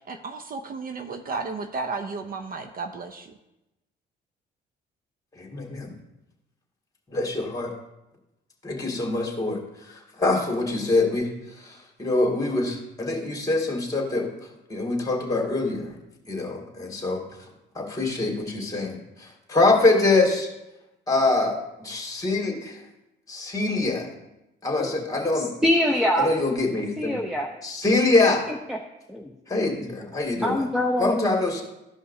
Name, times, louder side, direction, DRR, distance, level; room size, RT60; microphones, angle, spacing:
voice 1, 0.0-3.4, right 4 dB, 45° right, 7 dB, 0.6 m, -33 dB
voice 2, 5.3-5.9 7.1-7.7 8.6-14.3 14.7-16.0 16.3-17.2 17.7-20.5 21.1-22.8 23.3-24.1 24.6-25.5 26.2-27.2 27.6-28.5 29.5-30.7 31.0-31.6, left 2 dB, 20° left, -1 dB, 2.3 m, -24 dB
voice 3, 25.3-26.3 27.0-27.5 28.7-28.8 29.1-29.3 29.8-29.9 30.4-31.3, left 1 dB, ahead, 1 dB, 0.8 m, -24 dB
14.5 x 5.4 x 2.7 m, 0.93 s
cardioid pair, 90°, 20 cm